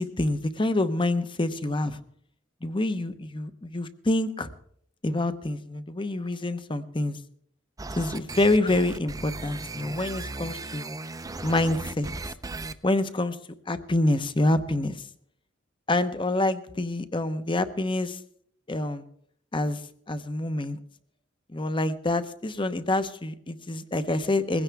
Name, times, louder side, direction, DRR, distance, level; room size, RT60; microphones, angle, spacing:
voice 1, 0.0-2.0 2.6-4.5 5.0-7.2 8.0-10.9 11.4-12.1 12.8-13.4 13.7-15.0 15.9-18.2 18.7-19.0 19.5-19.8 20.1-20.8 21.5-24.6, left 2 dB, 25° left, 11 dB, 0.9 m, -26 dB
sound 1, 7.8-12.7, right 2 dB, 20° right, 0.6 m, -36 dB
21.0 x 16.0 x 3.5 m, 0.65 s
head